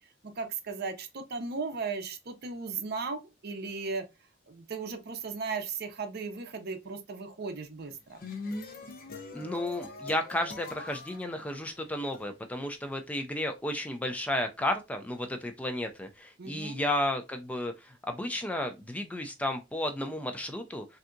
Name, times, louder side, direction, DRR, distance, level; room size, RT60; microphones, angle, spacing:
voice 1, 0.4-4.0 4.5-8.2 16.4-16.8, right 4 dB, 55° right, 0.6 m, -36 dB
sound 1, 7.9-12.2, left 3 dB, 50° left, 0.6 m, -42 dB
voice 2, 9.3-20.9, left 1 dB, 5° left, 0.3 m, -33 dB
3.3 x 2.7 x 2.5 m
head